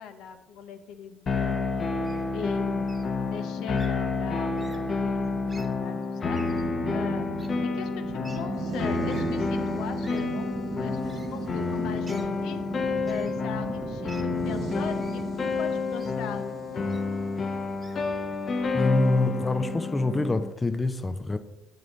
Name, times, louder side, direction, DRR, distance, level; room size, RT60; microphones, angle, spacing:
voice 1, 0.0-1.8 2.3-2.9 3.2-6.4 6.9-7.3 7.6-11.0 11.3-12.6 13.0-17.0, left 7 dB, 70° left, 0.7 m, -39 dB
sound 1, 1.3-20.5, left 4 dB, 45° left, 1.0 m, -29 dB
Wild animals, 2.0-2.2 2.9-3.1 3.7-3.9 4.6-4.8 5.4-5.7 6.3-6.7 7.4-7.5 8.2-8.4 9.1-9.2 10.0-10.2 11.1-11.3 12.0-12.3 13.0-13.3 14.1-14.2 15.0-15.2 16.0-16.1 16.9-17.0 17.8-18.0, right 3 dB, 25° right, 1.3 m, -49 dB
sound 2, 3.6-18.6, right 6 dB, 45° right, 0.3 m, -39 dB
voice 2, 18.7-21.4, left 2 dB, 20° left, 0.6 m, -25 dB
7.1 x 6.7 x 4.0 m
hypercardioid pair, 60°, 0 cm